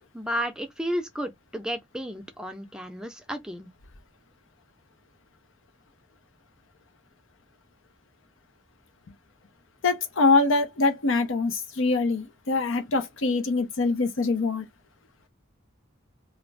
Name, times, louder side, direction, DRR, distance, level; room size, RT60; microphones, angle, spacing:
voice 1, 0.1-3.7, equal, 5° right, 0.4 m, -32 dB
voice 2, 9.8-14.7, left 3 dB, 80° left, 0.6 m, -24 dB
2.5 x 2.0 x 3.2 m
head